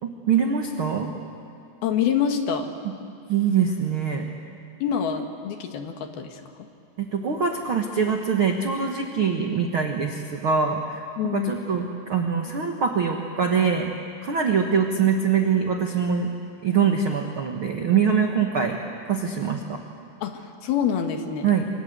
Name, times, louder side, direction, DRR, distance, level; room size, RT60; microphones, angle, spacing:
voice 1, 0.0-1.1 3.3-4.3 7.0-13.9 14.2-16.3 16.6-18.8 19.0-19.8 21.4-21.7, right 6 dB, 85° right, 3 dB, 1.1 m, -23 dB
voice 2, 1.8-2.7 4.8-6.4 11.2-11.5 20.2-21.5, left 8 dB, 70° left, 5 dB, 3.3 m, -26 dB
29.5 x 24.0 x 8.1 m, 2.5 s
omnidirectional pair, 4.9 m